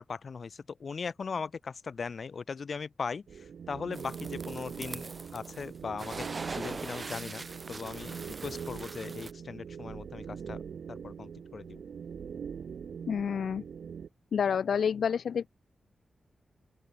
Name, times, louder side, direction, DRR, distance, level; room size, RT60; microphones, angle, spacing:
voice 1, 0.0-10.6 10.9-11.8, left 5 dB, 45° left, 2.6 m, -39 dB
sound 1, 3.3-14.1, right 7 dB, 70° right, 2.4 m, -42 dB
sound 2, 3.9-5.7 6.0-9.3, right 3 dB, 30° right, 0.4 m, -42 dB
voice 2, 13.1-13.6 14.3-15.5, left 7 dB, 75° left, 0.3 m, -28 dB
open air
wide cardioid pair, 175°, 0 cm